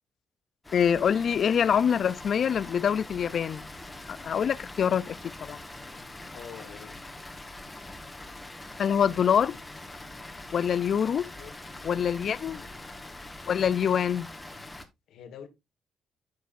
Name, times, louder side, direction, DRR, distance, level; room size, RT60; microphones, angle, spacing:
Water, 0.6-14.9, left 2 dB, 15° left, 1.4 m, -43 dB
voice 1, 0.7-3.7 4.1-5.2 5.4-5.6 8.8-9.6 10.5-11.3 11.8-12.6 13.5-14.3, left 8 dB, 55° left, 0.4 m, -25 dB
voice 2, 6.3-7.0 11.3-11.8 12.6-12.8 15.1-15.5, left 8 dB, 80° left, 1.4 m, -46 dB
10.0 x 6.6 x 2.5 m
cardioid pair, 90°, 0 cm